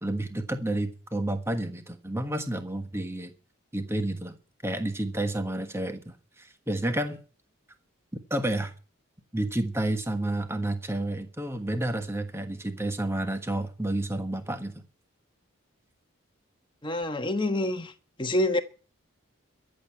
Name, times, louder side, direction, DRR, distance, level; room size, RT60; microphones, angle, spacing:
voice 1, 0.0-3.3 3.7-4.4 4.6-7.2 8.3-8.7 9.3-14.7, right 1 dB, 10° right, 1.3 m, -30 dB
voice 2, 16.8-17.9 18.2-18.6, left 1 dB, 20° left, 1.2 m, -26 dB
13.5 x 7.7 x 8.4 m
head